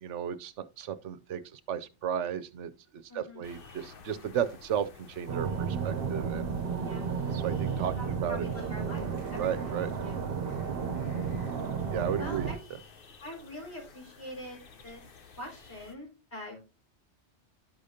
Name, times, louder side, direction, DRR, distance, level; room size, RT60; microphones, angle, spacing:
voice 1, 0.0-6.5 7.3-8.5 9.4-9.9 11.9-12.5, right 9 dB, 85° right, 1.0 m, -34 dB
voice 2, 3.1-3.4 6.9-7.0 8.0-9.8 10.0-10.2 12.2-12.6 13.2-15.0 15.4-16.6, left 1 dB, 75° left, 5.8 m, -43 dB
sound 1, 3.4-16.0, left 4 dB, 55° left, 1.0 m, -53 dB
sound 2, 5.3-12.6, right 6 dB, 60° right, 0.9 m, -33 dB
12.0 x 5.0 x 2.7 m
omnidirectional pair, 1.2 m